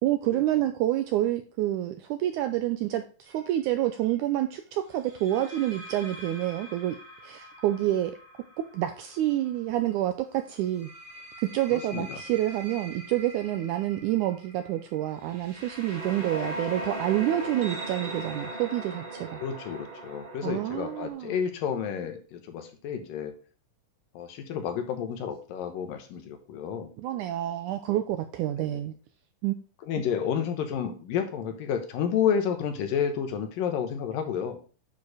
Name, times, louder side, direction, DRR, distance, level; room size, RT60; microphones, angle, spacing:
voice 1, 0.0-7.0 7.2-8.1 8.7-10.9 11.4-19.4 20.4-21.3 27.0-28.9 29.4-29.5, right 13 dB, 90° right, 8 dB, 1.8 m, -28 dB
sound 1, 3.3-3.5 5.0-9.8 10.6-21.1, right 1 dB, 20° right, 1.5 m, -40 dB
voice 2, 11.7-12.2 19.4-23.3 24.1-26.9 28.6-28.8 29.8-34.6, left 8 dB, 75° left, 6 dB, 2.8 m, -30 dB
9.5 x 4.7 x 4.9 m, 0.37 s
omnidirectional pair, 4.1 m